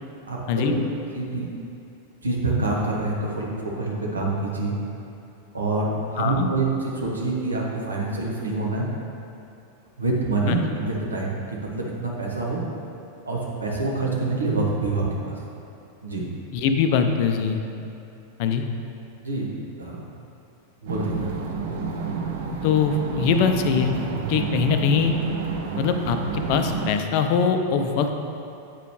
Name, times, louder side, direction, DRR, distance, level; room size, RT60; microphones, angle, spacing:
voice 1, 0.2-0.9 1.1-1.5 2.2-4.7 5.5-8.8 10.0-12.6 13.3-15.4 16.0-16.2 19.2-20.0 20.8-21.4, right 3 dB, 75° right, -3 dB, 1.1 m, -26 dB
voice 2, 6.2-6.5 10.5-10.6 16.5-17.6 18.4-18.6 22.6-23.9 24.3-25.1 25.8-28.2, left 6 dB, 45° left, 6 dB, 0.5 m, -22 dB
sound 1, 20.9-26.9, right 5 dB, 55° right, 0.6 m, -30 dB
8.3 x 5.0 x 3.1 m, 2.7 s
figure-of-eight pair, 90°, 0 cm